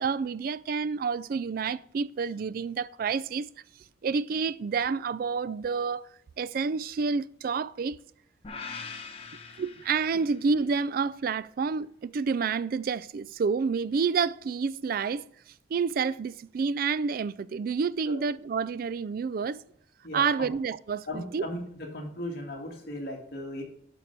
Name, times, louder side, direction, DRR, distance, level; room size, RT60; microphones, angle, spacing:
voice 1, 0.0-3.5 4.0-6.1 6.4-8.0 9.6-15.3 15.7-19.6 20.1-21.5, right 5 dB, 50° right, 0.3 m, -29 dB
sound 1, 8.4-10.7, left 5 dB, 30° left, 0.9 m, -42 dB
voice 2, 20.0-20.5 21.0-23.6, left 1 dB, 55° left, 2.3 m, -37 dB
11.5 x 4.6 x 5.3 m
head